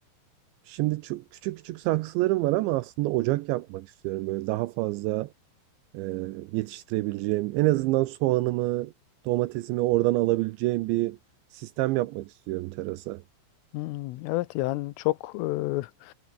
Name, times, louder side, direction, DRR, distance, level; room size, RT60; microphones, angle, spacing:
voice 1, 0.7-5.3 5.9-8.9 9.3-11.2 11.5-13.2, right 19 dB, 80° right, 2.7 m, -27 dB
voice 2, 13.7-16.1, left 19 dB, 85° left, 3.4 m, -30 dB
omnidirectional pair, 5.8 m